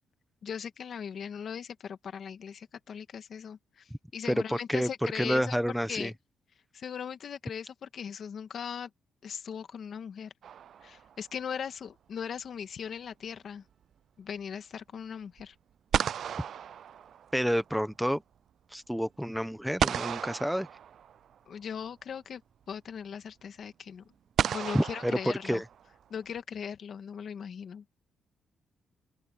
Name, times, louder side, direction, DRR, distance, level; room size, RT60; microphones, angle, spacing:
voice 1, 0.4-6.1 6.7-8.9 9.2-10.3 10.8-13.6 14.2-15.5 21.5-22.4 22.7-24.1 24.5-25.6 26.1-27.8, left 7 dB, 55° left, 1.8 m, -39 dB
voice 2, 4.5-6.1 17.3-18.2 18.7-20.7 24.7-25.1 25.4-25.6, equal, ahead, 1.0 m, -29 dB
sound 1, 10.4-11.3 15.4-15.5 15.9-17.6 19.8-21.4 22.7-22.8 24.4-26.0, right 9 dB, 60° right, 0.4 m, -33 dB
open air
cardioid pair, 120°, 0 cm